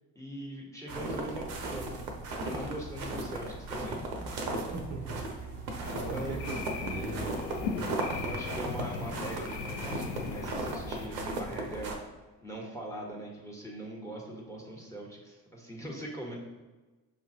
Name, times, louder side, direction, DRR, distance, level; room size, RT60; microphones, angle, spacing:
voice 1, 0.1-1.9 2.4-4.6 5.8-6.4 8.2-11.9 12.4-16.4, right 1 dB, 5° left, -1 dB, 1.3 m, -41 dB
sound 1, 0.9-11.9, right 2 dB, 80° right, 0.7 m, -36 dB
voice 2, 4.7-5.2 5.9-7.5, right 2 dB, 35° right, -2 dB, 0.9 m, -39 dB
sound 2, 5.8-11.1, left 5 dB, 80° left, 0.6 m, -38 dB
6.5 x 2.9 x 2.7 m, 1.2 s
figure-of-eight pair, 45°, 50 cm